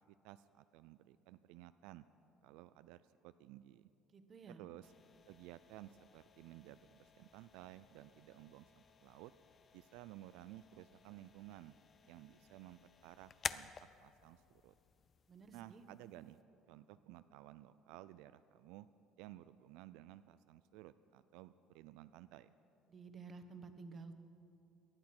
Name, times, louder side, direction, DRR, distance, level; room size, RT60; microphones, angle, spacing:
voice 1, 0.1-2.0 2.4-3.9 4.5-4.9 5.3-9.3 9.7-11.7 12.1-13.7 14.0-14.7 15.5-16.4 16.7-18.9 19.2-22.5, right 15 dB, 85° right, 13 dB, 0.3 m, -56 dB
voice 2, 4.1-4.6 15.3-15.8 22.9-24.2, right 4 dB, 30° right, 9 dB, 1.1 m, -53 dB
sound 1, 4.8-16.4, left 6 dB, 30° left, 0.4 m, -52 dB
19.0 x 11.5 x 6.0 m, 2.7 s
cardioid pair, 135°, 0 cm